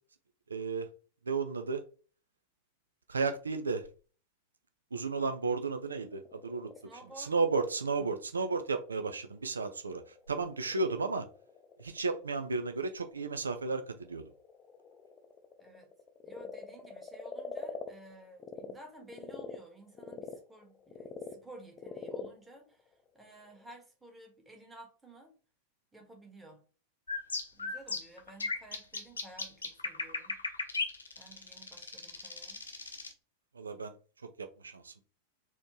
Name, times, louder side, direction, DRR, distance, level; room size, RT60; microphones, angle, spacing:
voice 1, 0.5-0.9 1.3-1.8 3.1-3.9 4.9-6.7 7.2-11.3 11.8-14.2 33.5-34.0 34.4-35.0, right 4 dB, 75° right, 8 dB, 0.4 m, -33 dB
Frog, 6.1-18.7 19.1-23.7, left 6 dB, 25° left, 0.5 m, -47 dB
voice 2, 6.8-7.3 8.0-8.5 15.6-15.9 16.2-25.3 25.9-26.6 27.5-30.4 31.2-32.6, right 1 dB, 10° right, 1 dB, 1.4 m, -54 dB
sound 1, 27.1-33.1, left 3 dB, 75° left, 0.7 m, -36 dB
4.2 x 2.9 x 2.9 m, 0.37 s
figure-of-eight pair, 90°, 0 cm